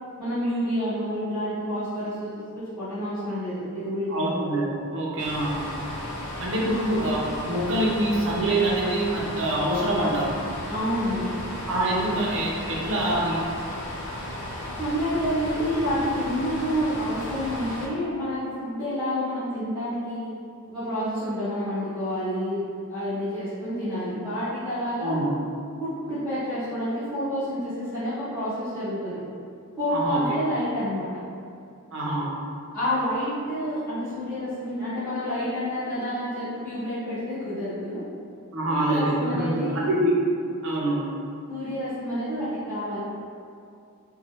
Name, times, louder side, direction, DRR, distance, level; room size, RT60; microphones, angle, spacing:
voice 1, 0.2-4.3 6.6-6.8 10.7-11.3 14.8-20.3 20.7-25.2 25.8-29.2 29.8-31.1 32.7-38.0 38.7-39.9 41.5-43.0, equal, ahead, -20 dB, 0.9 m, -29 dB
voice 2, 4.1-5.6 6.4-10.3 11.7-13.5 25.0-25.3 29.9-30.2 31.9-32.3 38.5-40.1 40.6-41.0, right 1 dB, 60° right, -4 dB, 0.5 m, -25 dB
sound 1, 5.2-17.9, left 1 dB, 85° left, 0.6 m, -35 dB
3.0 x 2.2 x 2.8 m, 2.4 s
head